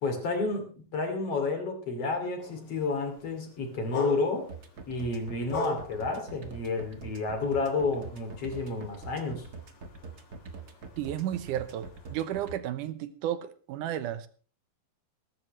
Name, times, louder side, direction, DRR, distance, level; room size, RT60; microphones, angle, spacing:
voice 1, 0.0-4.5 4.9-9.5, left 3 dB, 45° left, 3.5 m, -30 dB
sound 1, 2.4-12.6, left 1 dB, 85° left, 4.5 m, -43 dB
sound 2, 4.5-12.5, right 4 dB, 45° right, 1.3 m, -43 dB
voice 2, 11.0-14.3, right 11 dB, 75° right, 2.3 m, -33 dB
21.5 x 12.0 x 3.2 m
omnidirectional pair, 3.9 m